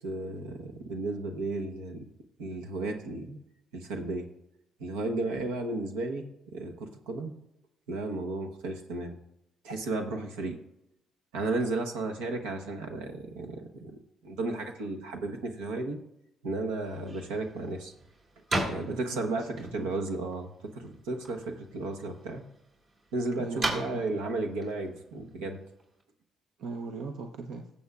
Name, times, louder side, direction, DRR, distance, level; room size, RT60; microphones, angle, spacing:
voice 1, 0.0-2.1 2.4-3.4 3.7-4.3 4.8-7.3 7.9-9.2 9.6-10.6 11.3-16.0 16.4-17.9 18.6-22.4 23.1-25.6, right 2 dB, 85° right, 3 dB, 1.0 m, -34 dB
sound 1, 16.8-26.0, right 2 dB, 55° right, 3.0 m, -39 dB
voice 2, 18.9-19.9 23.4-24.2 26.6-27.7, right 4 dB, 70° right, 4 dB, 0.7 m, -39 dB
16.5 x 7.1 x 2.4 m, 0.81 s
hypercardioid pair, 60°, 0 cm